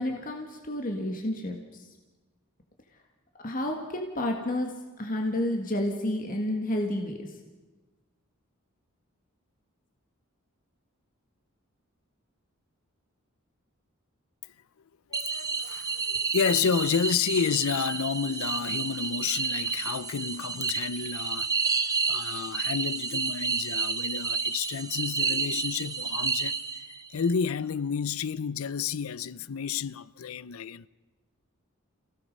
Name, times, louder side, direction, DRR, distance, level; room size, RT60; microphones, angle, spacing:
voice 1, 0.0-1.9 3.4-7.3, left 1 dB, 40° left, 1.7 m, -30 dB
voice 2, 15.1-21.7 22.1-26.8 27.1-30.9, left 6 dB, 85° left, 0.5 m, -30 dB
sound 1, 15.1-27.1, right 5 dB, 15° right, 0.8 m, -30 dB
29.0 x 16.5 x 5.4 m
head